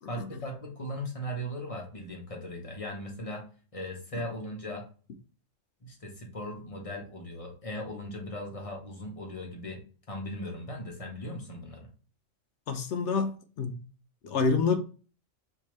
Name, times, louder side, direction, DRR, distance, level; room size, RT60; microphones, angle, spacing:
voice 1, 0.1-3.5 3.7-4.9 5.8-9.8 10.1-11.9, equal, 30° left, 1.0 m, -38 dB
voice 2, 12.7-13.8 14.2-14.8, left 4 dB, 70° left, 0.9 m, -28 dB
4.4 x 2.9 x 3.1 m
omnidirectional pair, 1.3 m